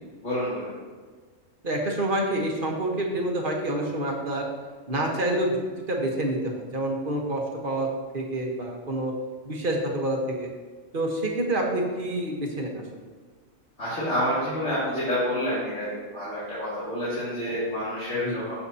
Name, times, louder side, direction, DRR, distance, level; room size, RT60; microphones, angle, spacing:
voice 1, 0.2-0.7 13.8-18.6, equal, 65° left, -12 dB, 2.9 m, -28 dB
voice 2, 1.6-4.4 4.9-7.9 8.1-9.1 9.4-10.5 10.9-12.8 18.2-18.4, right 1 dB, 45° right, 0 dB, 1.3 m, -27 dB
14.0 x 5.9 x 2.8 m, 1.5 s
omnidirectional pair, 1.3 m